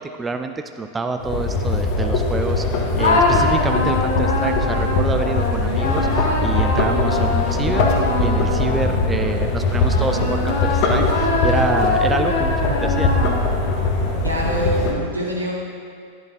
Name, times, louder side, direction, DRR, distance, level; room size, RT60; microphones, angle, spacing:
voice 1, 0.0-7.9 8.2-13.1, right 4 dB, 15° right, 7 dB, 0.4 m, -27 dB
sound 1, 1.2-14.9, left 2 dB, 45° left, 1.2 m, -21 dB
sound 2, 3.0-9.2 9.8-13.7, left 3 dB, 70° left, 1.6 m, -23 dB
voice 2, 14.2-15.7, equal, 80° right, -3 dB, 1.7 m, -25 dB
12.0 x 10.5 x 2.6 m, 2.2 s
figure-of-eight pair, 90°, 0 cm